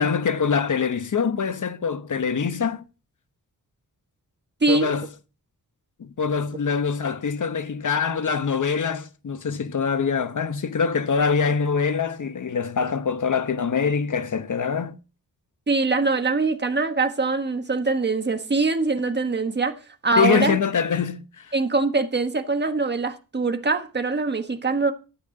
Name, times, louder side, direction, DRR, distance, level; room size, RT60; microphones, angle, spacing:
voice 1, 0.0-2.8 4.7-5.1 6.0-15.0 20.2-21.5, left 6 dB, 55° left, 1.0 m, -24 dB
voice 2, 15.7-20.6 21.5-24.9, right 3 dB, 30° right, 1.4 m, -23 dB
12.5 x 8.4 x 3.9 m
wide cardioid pair, 90°, 36 cm